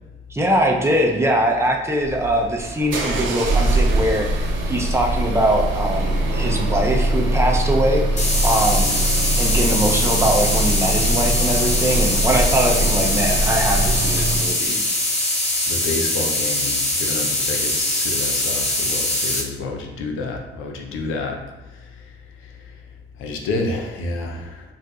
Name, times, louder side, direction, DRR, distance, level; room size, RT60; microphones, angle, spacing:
voice 1, 0.3-8.9 9.4-14.8, right 1 dB, 15° right, 0 dB, 0.5 m, -22 dB
sound 1, 2.0-14.5, right 2 dB, 75° right, 0.7 m, -22 dB
sound 2, 8.2-19.4, left 1 dB, 35° left, 0.8 m, -22 dB
voice 2, 8.7-9.2 15.7-21.4 22.4-22.5 23.2-24.7, left 2 dB, 85° left, 2 dB, 0.6 m, -29 dB
4.5 x 2.5 x 2.4 m, 1.1 s
cardioid pair, 90°, 20 cm